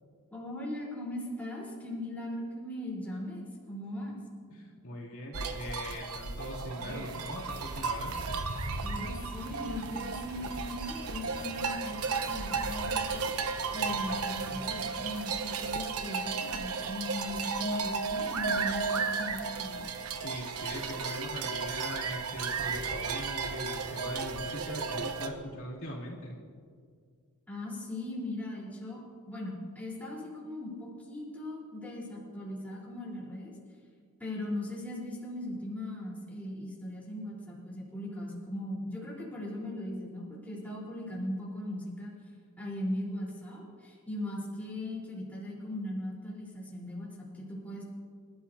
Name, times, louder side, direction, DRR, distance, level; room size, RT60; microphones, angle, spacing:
voice 1, 0.3-4.2 8.8-13.3 13.7-19.8 27.5-29.0 29.3-33.5 34.2-42.1 42.6-47.8, left 1 dB, 5° left, -6 dB, 3.9 m, -39 dB
voice 2, 4.5-8.1 20.2-26.3, left 1 dB, 65° left, -5 dB, 2.9 m, -41 dB
sound 1, 5.3-25.3, right 5 dB, 85° right, 1.0 m, -34 dB
sound 2, 6.8-15.7, right 1 dB, 45° right, 1.5 m, -49 dB
28.0 x 13.0 x 2.8 m, 2.1 s
head